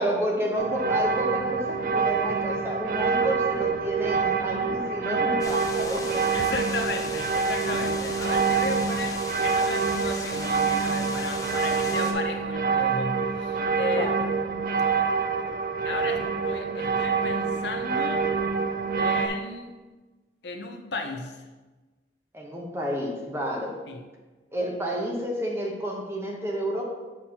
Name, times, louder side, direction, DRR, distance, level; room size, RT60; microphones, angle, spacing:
voice 1, 0.0-6.3 13.9-14.3 22.3-23.8 24.5-26.8, equal, 15° right, -1 dB, 0.9 m, -30 dB
sound 1, 0.6-19.3, right 5 dB, 50° right, 0.4 m, -26 dB
sound 2, 5.4-12.1, left 3 dB, 20° left, 0.5 m, -38 dB
voice 2, 6.3-14.1 15.8-18.3 19.0-19.8 20.4-21.4 23.9-24.1, left 3 dB, 75° left, 4 dB, 0.6 m, -34 dB
7.1 x 5.8 x 2.9 m, 1.2 s
head